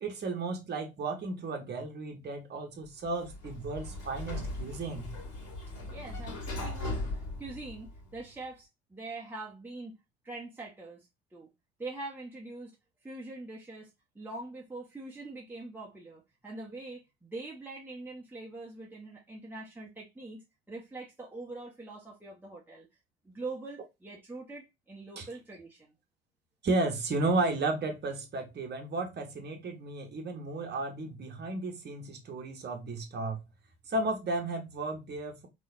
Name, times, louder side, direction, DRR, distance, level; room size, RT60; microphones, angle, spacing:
voice 1, 0.0-5.1 25.2-25.3 26.6-33.4 33.9-35.5, right 2 dB, 35° right, 1.1 m, -33 dB
Sliding door, 3.0-8.3, left 2 dB, 50° left, 2.3 m, -38 dB
voice 2, 5.8-7.0 7.4-9.9 10.2-11.5 11.8-12.7 13.0-13.9 14.1-20.4 20.7-22.9 23.2-25.9, right 2 dB, 5° right, 1.1 m, -43 dB
3.8 x 3.1 x 2.6 m
figure-of-eight pair, 55°, 31 cm